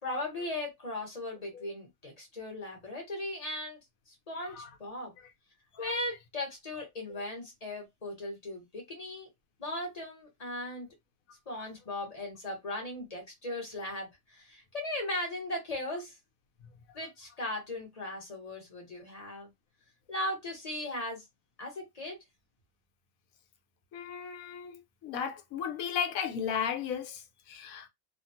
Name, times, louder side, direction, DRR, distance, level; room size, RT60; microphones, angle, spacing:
voice 1, 0.0-3.8 4.1-5.1 5.8-9.3 9.6-10.9 11.5-16.2 16.9-19.5 20.1-21.2 21.6-22.2, left 1 dB, 30° left, 1.3 m, -38 dB
voice 2, 23.9-27.9, left 7 dB, 85° left, 1.1 m, -35 dB
2.8 x 2.4 x 2.7 m
omnidirectional pair, 1.4 m